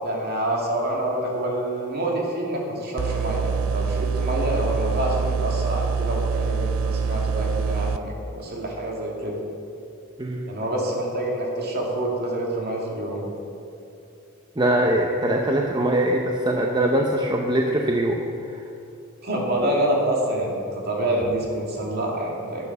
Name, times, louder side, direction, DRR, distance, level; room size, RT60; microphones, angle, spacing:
voice 1, 0.0-9.3 10.5-13.3 19.2-22.7, right 1 dB, 50° right, -2 dB, 2.6 m, -27 dB
sound 1, 3.0-8.0, right 5 dB, 85° right, 0.5 m, -25 dB
voice 2, 10.2-10.5 14.6-18.6, right 1 dB, 20° right, 1 dB, 0.7 m, -22 dB
11.0 x 8.7 x 6.7 m, 2.7 s
head